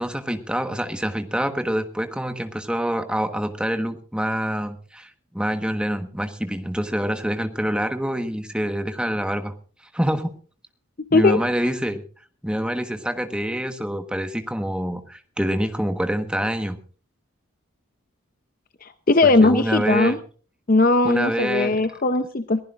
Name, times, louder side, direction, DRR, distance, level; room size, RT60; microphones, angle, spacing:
voice 1, 0.0-9.5 9.9-10.3 11.1-12.0 12.4-16.8 19.2-20.2 21.0-21.8, equal, 5° right, 7 dB, 1.3 m, -26 dB
voice 2, 18.8-20.2 20.7-22.6, left 2 dB, 40° left, 10 dB, 0.7 m, -18 dB
22.5 x 15.5 x 2.5 m, 0.41 s
head